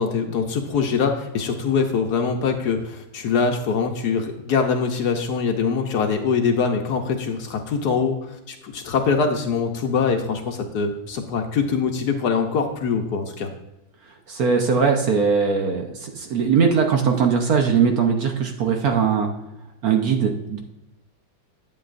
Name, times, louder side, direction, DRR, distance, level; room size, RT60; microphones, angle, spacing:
voice 1, 0.0-13.5, left 5 dB, 65° left, 4 dB, 1.2 m, -23 dB
voice 2, 14.1-19.3 19.8-20.6, right 6 dB, 60° right, 3 dB, 1.1 m, -20 dB
11.0 x 7.8 x 2.5 m, 0.94 s
omnidirectional pair, 2.1 m